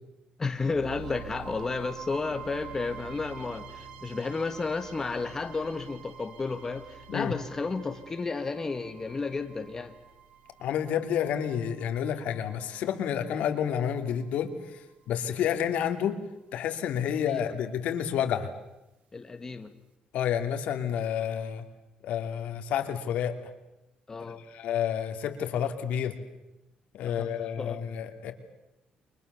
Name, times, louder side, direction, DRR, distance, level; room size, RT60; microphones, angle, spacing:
voice 1, 0.4-9.9 17.3-17.4 19.1-19.7 24.1-24.4 27.0-27.8, left 4 dB, 20° left, 6 dB, 1.6 m, -32 dB
sound 1, 0.6-14.6, right 8 dB, 65° right, 2.6 m, -47 dB
voice 2, 10.6-16.2 16.5-18.5 20.1-21.6 22.0-23.3 24.5-26.2 26.9-28.3, left 9 dB, 75° left, 6 dB, 3.0 m, -30 dB
29.5 x 24.5 x 7.0 m, 0.95 s
cardioid pair, 155°, 2 cm